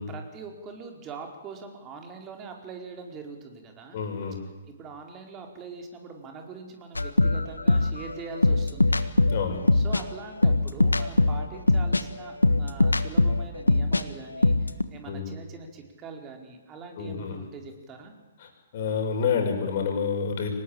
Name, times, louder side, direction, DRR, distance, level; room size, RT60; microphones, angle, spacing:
voice 1, 0.0-4.0 4.7-8.9 9.7-18.1, right 4 dB, 25° right, 3 dB, 4.4 m, -42 dB
voice 2, 3.9-4.4 9.3-9.6 15.0-15.3 17.0-17.4 18.4-20.5, left 6 dB, 50° left, 3 dB, 6.4 m, -28 dB
sound 1, 7.0-14.0 14.3-14.8, left 2 dB, 85° left, 1.4 m, -22 dB
24.5 x 19.5 x 8.8 m, 1.1 s
figure-of-eight pair, 125°, 0 cm